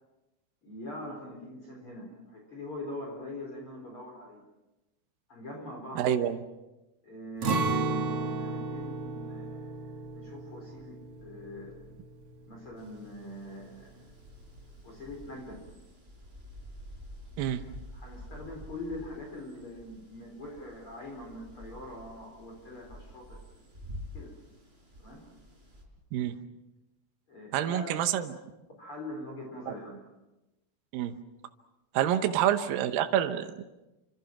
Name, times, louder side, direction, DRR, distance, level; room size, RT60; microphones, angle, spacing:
voice 1, 0.6-4.4 5.3-6.1 7.0-11.8 12.5-14.1 14.8-15.6 17.9-23.4 24.1-24.4 25.0-25.2 27.3-28.0 28.8-30.0 32.1-32.3, left 1 dB, 30° left, 0 dB, 4.9 m, -43 dB
voice 2, 6.0-6.4 17.4-17.6 26.1-26.3 27.5-28.3 29.7-29.8 30.9-31.1 31.9-33.6, right 10 dB, 70° right, 7 dB, 2.5 m, -27 dB
Acoustic guitar, 7.4-13.3 13.6-13.8 14.3-14.8, right 3 dB, 40° right, 2.6 m, -34 dB
sound 1, 12.8-25.8, left 1 dB, 15° right, 4.5 m, -49 dB
28.5 x 26.0 x 6.0 m, 1.0 s
omnidirectional pair, 4.8 m